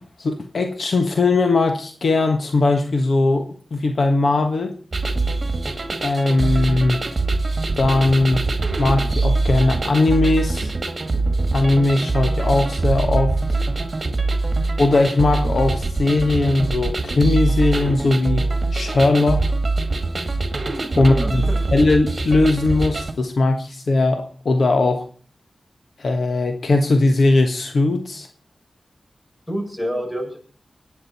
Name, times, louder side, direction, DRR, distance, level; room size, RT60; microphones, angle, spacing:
voice 1, 0.2-4.7 6.0-7.0 7.8-8.4 8.8-10.7 11.5-13.6 14.8-18.4 18.7-19.4 20.9-21.4 21.7-25.0 26.0-28.3, left 2 dB, 70° left, 5 dB, 1.4 m, -19 dB
sound 1, 4.9-23.1, right 3 dB, 40° right, 1.9 m, -23 dB
voice 2, 21.0-21.6 29.5-30.4, equal, 20° left, 2 dB, 6.4 m, -27 dB
25.0 x 9.2 x 4.3 m, 0.41 s
wide cardioid pair, 85°, 0 cm